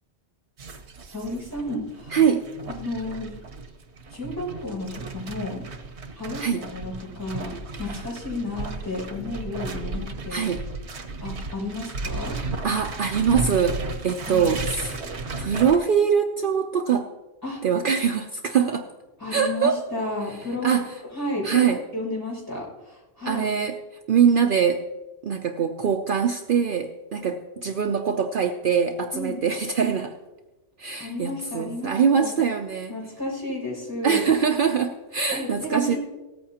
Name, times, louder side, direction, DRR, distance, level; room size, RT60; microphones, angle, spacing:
sound 1, 0.6-15.8, right 3 dB, 85° right, 1.3 m, -34 dB
voice 1, 1.1-2.2 2.7-3.3 4.1-5.6 6.2-10.5 11.2-12.4 14.2-14.5 17.4-17.6 19.2-23.5 29.1-29.4 31.0-32.4 32.9-34.3 35.3-36.0, left 2 dB, 20° left, -6 dB, 5.7 m, -32 dB
voice 2, 2.1-2.5 6.4-6.6 10.3-10.6 12.6-15.0 15.4-17.1 17.6-18.9 19.3-19.8 20.6-20.9 21.4-21.8 23.2-23.8 24.1-24.8 25.2-30.2 30.8-33.0 34.0-36.0, right 7 dB, 60° right, 5 dB, 0.8 m, -23 dB
17.5 x 14.0 x 2.9 m, 1.1 s
omnidirectional pair, 1.1 m